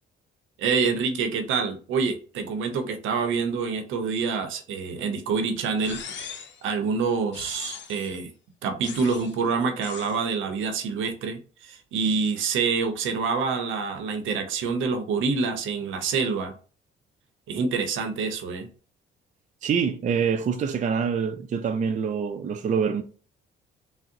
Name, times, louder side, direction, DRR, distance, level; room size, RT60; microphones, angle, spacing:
voice 1, 0.6-6.0 6.6-8.3 8.6-16.5 17.5-18.7, right 5 dB, 80° right, 0.7 m, -26 dB
sound 1, 5.8-6.6 7.3-8.1 8.8-9.4 9.8-10.2, left 6 dB, 65° left, 0.6 m, -39 dB
voice 2, 19.6-23.0, right 6 dB, 40° right, 0.4 m, -25 dB
3.7 x 2.0 x 2.6 m
cardioid pair, 90°, 20 cm